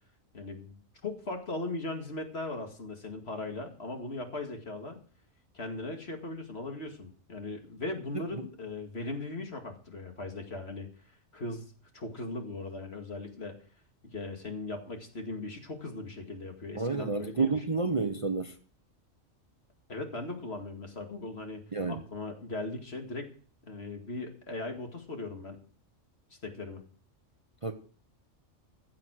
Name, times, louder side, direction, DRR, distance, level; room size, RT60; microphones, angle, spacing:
voice 1, 0.3-5.0 5.5-10.9 11.3-11.7 11.9-13.6 14.0-17.7 19.9-21.6 21.9-23.3 23.6-25.6 26.4-26.8, left 2 dB, 55° left, 2.4 m, -38 dB
voice 2, 16.8-18.5 21.7-22.0 27.6-27.7, right 4 dB, 30° right, 0.9 m, -29 dB
15.0 x 7.7 x 6.4 m
omnidirectional pair, 1.3 m